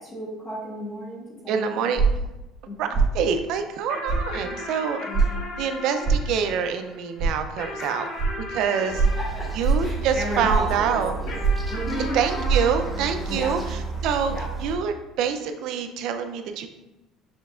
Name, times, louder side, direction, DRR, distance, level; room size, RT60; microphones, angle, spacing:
voice 1, 0.0-1.9 2.7-3.0 4.4-4.6 5.1-5.4 7.8-7.9 8.8-8.9 9.2-9.5 9.8-11.4 11.7-12.2 13.3-13.5 14.3-14.5, equal, 25° left, -5 dB, 1.2 m, -33 dB
voice 2, 1.5-2.0 2.8-2.9 3.1-5.1 5.6-8.0 8.5-8.9 9.6-11.1 12.1-14.3 14.6-16.7, right 7 dB, 65° right, 7 dB, 0.5 m, -26 dB
sound 1, 2.0-2.3 2.9-3.2 4.1-4.2 5.1-5.3 6.0-6.3 7.2-7.3 8.2-8.3 9.0-9.2 9.6-9.9 10.5-10.7 11.4-11.7 12.4-12.6, right 4 dB, 35° right, 1.4 m, -21 dB
sound 2, 3.9-10.6 11.3-14.1, left 2 dB, 60° left, 1.3 m, -37 dB
sound 3, 8.9-14.8, right 4 dB, ahead, 0.9 m, -32 dB
6.2 x 3.3 x 2.4 m, 0.98 s
cardioid pair, 115°, 0 cm